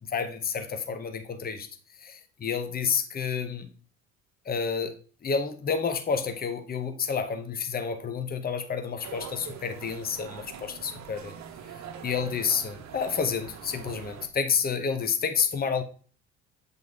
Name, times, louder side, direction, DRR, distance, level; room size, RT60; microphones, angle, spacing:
voice 1, 0.1-1.7 2.0-3.7 4.4-4.9 5.2-11.3 12.0-15.8, left 6 dB, 25° left, 8 dB, 0.9 m, -29 dB
sound 1, 9.0-14.3, right 7 dB, 45° right, 0.9 m, -43 dB
7.6 x 3.8 x 3.5 m, 0.40 s
hypercardioid pair, 60°, 39 cm